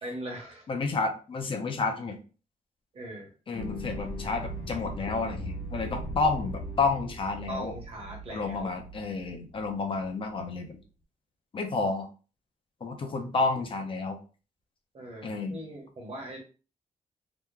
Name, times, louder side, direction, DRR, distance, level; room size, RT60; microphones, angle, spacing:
voice 1, 0.0-0.7 2.9-3.3 7.5-8.7 14.9-16.4, right 1 dB, 45° right, -1 dB, 1.1 m, -40 dB
voice 2, 0.7-2.2 3.5-7.7 8.3-10.7 11.5-12.1 12.8-14.2 15.2-15.6, left 3 dB, 40° left, 4 dB, 0.6 m, -30 dB
sound 1, 3.5-10.0 10.4-10.5, equal, 70° left, 1.1 m, -39 dB
2.9 x 2.2 x 3.6 m, 0.34 s
wide cardioid pair, 170°, 14 cm